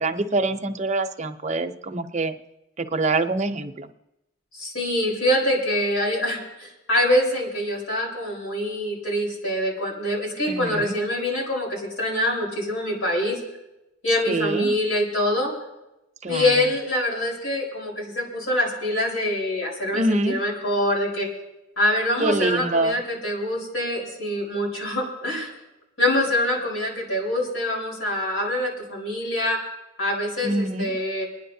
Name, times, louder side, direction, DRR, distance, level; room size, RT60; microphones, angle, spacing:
voice 1, 0.0-2.4 2.8-3.9 10.5-10.9 14.3-14.7 16.2-16.4 19.9-20.3 22.2-23.0 30.4-30.9, right 2 dB, 35° right, 6 dB, 0.8 m, -25 dB
voice 2, 4.5-13.4 14.0-15.5 16.3-21.3 21.8-25.5 26.0-29.6 30.0-31.2, left 1 dB, 90° left, -2 dB, 4.5 m, -25 dB
29.5 x 10.5 x 2.8 m, 0.94 s
head